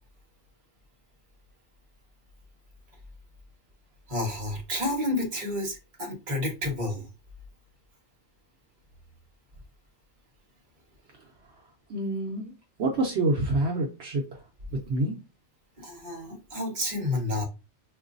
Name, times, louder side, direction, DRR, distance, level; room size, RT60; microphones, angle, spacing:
voice 1, 4.1-7.1 15.8-17.4, left 2 dB, 40° right, 1.2 m, -30 dB
voice 2, 11.9-12.5 12.8-14.4 14.7-15.2, right 2 dB, 70° right, 0.9 m, -27 dB
3.7 x 2.6 x 2.5 m
omnidirectional pair, 1.2 m